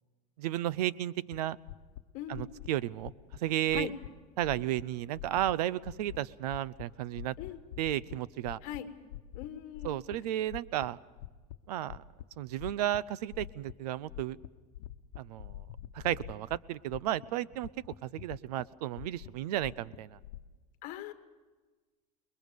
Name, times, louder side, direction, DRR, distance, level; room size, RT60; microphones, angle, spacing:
voice 1, 0.4-1.6 2.3-3.9 4.4-7.3 7.8-8.6 9.8-11.0 11.7-12.0 12.4-14.4 15.2-15.6 15.9-17.7 18.0-20.2, right 13 dB, 90° right, 20 dB, 0.7 m, -33 dB
sound 1, 1.3-1.4 1.7-2.0 2.3-2.7 3.0-3.4 3.7-4.1 4.4-4.8 5.1-5.5 5.8-6.2 6.5-6.8 7.1-8.2 8.4-8.8 9.1-9.5 9.7-10.2 10.5-11.6 11.9-12.2 12.6-13.0 13.3-13.7 14.0-14.5 14.7-16.6 16.9-17.3 17.5-18.6 19.0-20.4, left 14 dB, 80° left, 1.0 m, -45 dB
voice 2, 2.1-2.5 3.7-3.9 7.4-7.6 8.6-8.9 9.3-9.9 20.8-21.1, left 12 dB, 40° left, 9 dB, 1.7 m, -40 dB
29.0 x 21.5 x 5.3 m, 1.3 s
supercardioid pair, 165°, 20 cm